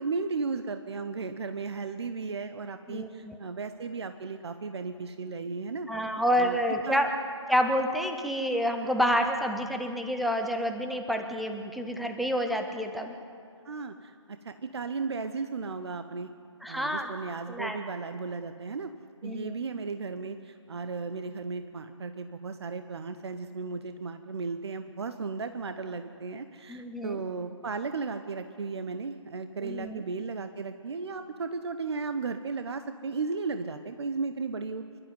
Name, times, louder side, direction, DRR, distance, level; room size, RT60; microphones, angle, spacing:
voice 1, 0.0-5.9 6.4-6.6 6.8-7.1 13.6-16.3 16.7-18.9 19.2-34.8, right 4 dB, 55° right, 9 dB, 1.0 m, -35 dB
voice 2, 2.9-3.4 5.9-7.1 7.5-13.1 16.6-17.1 17.5-17.8 19.2-19.5 26.7-27.2 29.6-30.0, equal, ahead, 4 dB, 0.4 m, -28 dB
27.0 x 12.0 x 9.5 m, 2.3 s
figure-of-eight pair, 155°, 16 cm